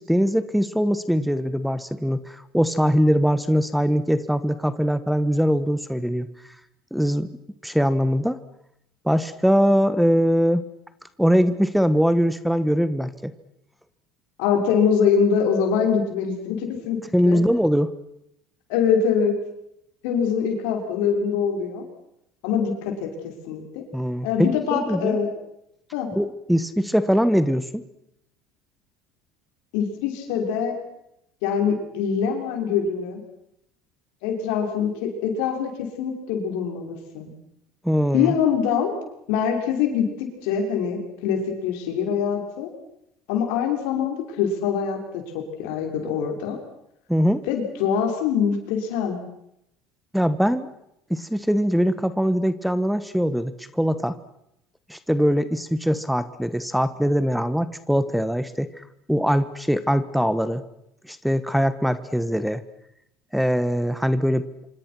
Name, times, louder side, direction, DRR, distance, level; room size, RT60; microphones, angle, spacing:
voice 1, 0.0-6.3 6.9-7.3 7.6-8.4 9.0-10.6 11.2-13.3 17.1-17.9 23.9-25.2 26.2-27.8 37.8-38.3 47.1-47.4 50.1-50.7 51.1-54.2 54.9-60.6 61.0-62.6 63.3-64.4, equal, ahead, 14 dB, 1.3 m, -22 dB
voice 2, 14.4-17.0 17.2-17.4 18.7-19.3 20.0-21.8 22.4-23.8 24.2-25.3 25.9-26.1 29.7-30.8 31.4-33.2 34.2-37.3 38.1-38.9 39.3-42.7 43.3-46.6 47.5-49.2, left 7 dB, 80° left, 3 dB, 6.2 m, -24 dB
26.0 x 25.5 x 6.2 m, 0.79 s
supercardioid pair, 110°, 0 cm